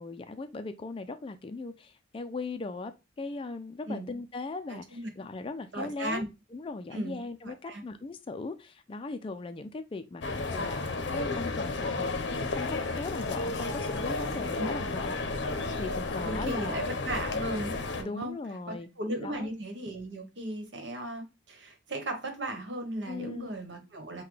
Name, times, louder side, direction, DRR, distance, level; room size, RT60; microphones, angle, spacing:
voice 1, 0.0-2.9 3.2-6.3 6.5-15.2 15.5-16.8 18.0-18.9 19.2-19.5 23.1-23.5, left 3 dB, 30° left, 0.3 m, -39 dB
voice 2, 4.7-5.1 5.7-6.3 6.9-7.2 7.4-7.8 14.6-14.7 16.2-18.4 18.7-24.2, right 1 dB, 70° right, 1.2 m, -36 dB
sound 1, 10.2-18.0, left 3 dB, 65° left, 0.6 m, -32 dB
5.8 x 2.2 x 3.1 m
head